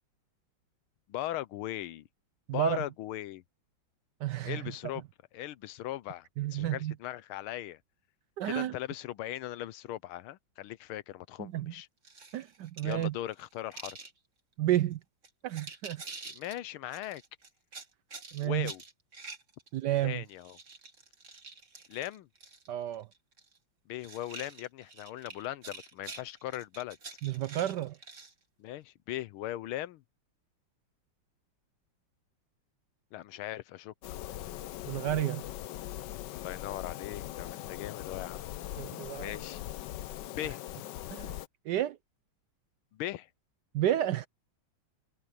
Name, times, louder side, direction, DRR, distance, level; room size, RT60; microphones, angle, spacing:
voice 1, 1.1-2.1 2.5-3.4 4.4-5.0 5.3-7.8 8.4-11.9 12.8-14.0 16.3-17.2 18.4-18.8 20.0-20.6 21.9-22.3 23.9-27.0 28.6-30.0 33.1-33.9 36.3-38.5 39.2-39.6 40.3-40.6 42.9-43.3, left 14 dB, 90° left, 1.6 m, -39 dB
voice 2, 2.5-2.8 4.2-4.7 6.4-6.9 8.4-8.7 11.4-11.7 12.3-13.1 14.6-15.0 15.4-16.0 18.3-18.7 19.7-20.2 22.7-23.1 27.2-28.0 34.9-35.4 38.8-39.4 41.1-41.3 41.7-42.0 43.7-44.3, right 12 dB, 70° right, 1.0 m, -31 dB
sound 1, 12.0-14.1 14.8-14.9 15.2-16.6 16.9-20.0 20.3-22.7 22.9-23.6 24.0-28.3, right 4 dB, 35° right, 2.3 m, -47 dB
sound 2, 34.0-41.5, left 13 dB, 70° left, 1.1 m, -41 dB
omnidirectional pair, 2.3 m